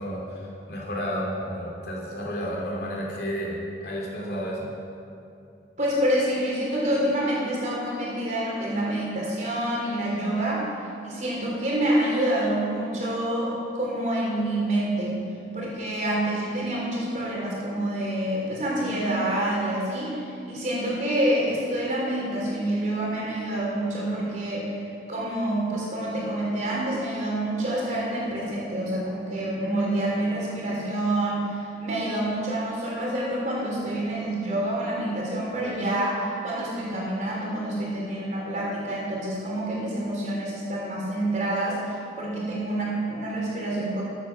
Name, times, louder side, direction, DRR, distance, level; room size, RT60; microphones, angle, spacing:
voice 1, 0.0-4.7, equal, 65° left, -3 dB, 2.8 m, -31 dB
voice 2, 5.8-10.7 11.0-15.2 15.5-24.8 25.1-44.0, right 1 dB, 45° right, -4 dB, 3.7 m, -27 dB
14.0 x 8.9 x 6.2 m, 2.6 s
head